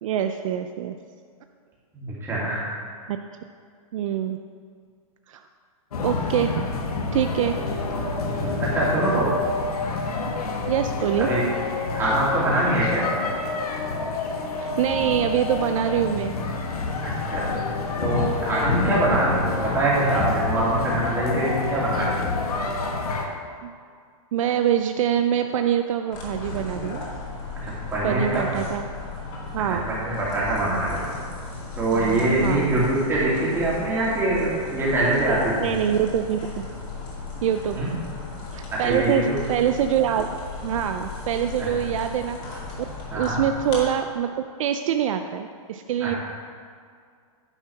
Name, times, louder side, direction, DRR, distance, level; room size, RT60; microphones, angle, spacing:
voice 1, 0.0-1.0 3.1-3.2 3.9-4.4 5.3-5.4 6.0-6.7 7.1-7.6 10.7-11.3 14.6-16.3 18.8-19.2 23.6-23.7 24.3-27.0 28.0-28.9 29.5-29.8 31.9-32.8 35.6-36.6 37.4-37.8 38.5-40.3 40.6-42.6 43.1-44.3 44.6-46.1, right 9 dB, 60° right, 7 dB, 0.5 m, -25 dB
voice 2, 1.9-2.7 8.3-9.3 11.2-11.4 11.9-13.0 17.0-17.5 18.0-22.2 27.6-28.7 29.7-31.1 31.8-35.7 37.7-37.9 38.7-39.3 41.6-41.7 43.1-43.4 46.0-46.2, right 2 dB, 15° right, -7 dB, 2.5 m, -24 dB
sound 1, 5.9-23.3, left 3 dB, 90° left, 1.2 m, -27 dB
sound 2, 26.1-43.8, left 3 dB, 35° left, 2.3 m, -36 dB
9.8 x 4.5 x 5.8 m, 2.1 s
hypercardioid pair, 150°, 19 cm